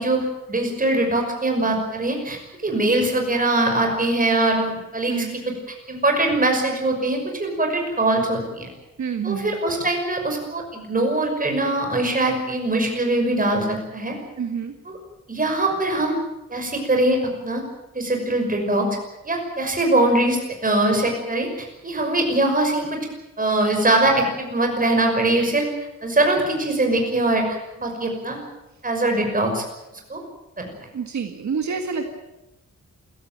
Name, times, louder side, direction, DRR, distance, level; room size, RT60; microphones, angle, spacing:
voice 1, 0.0-5.5 5.9-8.7 9.2-14.1 14.9-15.0 15.3-16.2 16.5-17.6 17.9-18.9 19.2-23.0 23.4-25.7 26.0-27.5 27.8-28.4 28.8-29.6 29.9-30.2 30.6-30.7, right 2 dB, 30° right, 3 dB, 5.9 m, -22 dB
voice 2, 9.0-9.6 14.4-14.7 30.9-32.1, right 6 dB, 70° right, 4 dB, 2.0 m, -27 dB
27.5 x 15.5 x 9.0 m, 0.99 s
wide cardioid pair, 175°, 30 cm